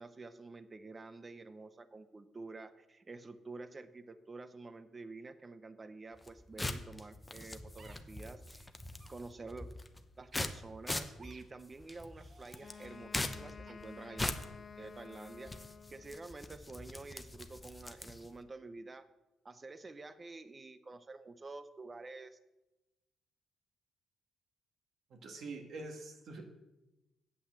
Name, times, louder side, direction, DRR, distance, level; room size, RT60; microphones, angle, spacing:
voice 1, 0.0-8.7 9.1-9.7 10.2-14.3 14.8-15.5 15.9-19.1 19.4-22.4, right 3 dB, 25° right, 12 dB, 0.6 m, -49 dB
sound 1, 6.1-18.4, left 2 dB, 15° left, 0.8 m, -42 dB
sound 2, 7.8-8.0 8.9-9.1 10.3-10.5 11.2-11.4 12.1-13.0 13.7-13.8, right 4 dB, 45° right, 1.0 m, -59 dB
Wind instrument woodwind instrument, 12.6-16.3, left 6 dB, 45° left, 0.5 m, -52 dB
voice 2, 25.1-26.4, right 3 dB, 65° right, 3 dB, 1.8 m, -45 dB
8.4 x 5.6 x 7.5 m, 1.0 s
cardioid pair, 90°, 0 cm